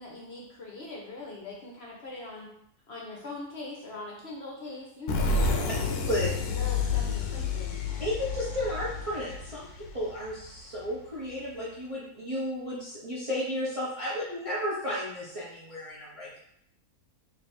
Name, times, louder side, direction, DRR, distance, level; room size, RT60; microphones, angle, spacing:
voice 1, 0.0-2.5 2.9-7.7, left 2 dB, 55° left, -2 dB, 0.8 m, -42 dB
sound 1, 5.1-10.6, left 4 dB, 75° left, 1.1 m, -30 dB
voice 2, 8.0-16.4, left 1 dB, 35° right, -7 dB, 0.6 m, -33 dB
3.3 x 2.6 x 4.2 m, 0.73 s
omnidirectional pair, 1.6 m